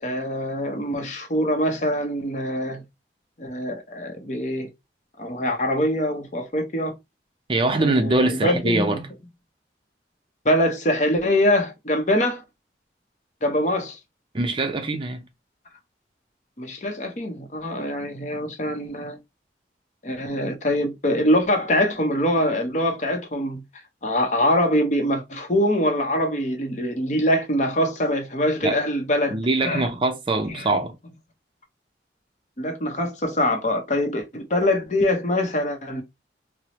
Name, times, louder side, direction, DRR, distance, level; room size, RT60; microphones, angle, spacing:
voice 1, 0.0-2.8 3.4-4.7 5.2-6.9 7.8-9.0 10.4-12.4 13.4-14.0 16.6-19.2 20.0-23.6 24.0-29.9 30.5-30.7 32.6-36.0, left 1 dB, 45° left, 0.7 m, -24 dB
voice 2, 7.5-9.0 14.3-15.2 28.6-28.8 29.3-30.9, right 2 dB, 30° right, 0.4 m, -23 dB
4.5 x 2.0 x 2.9 m
head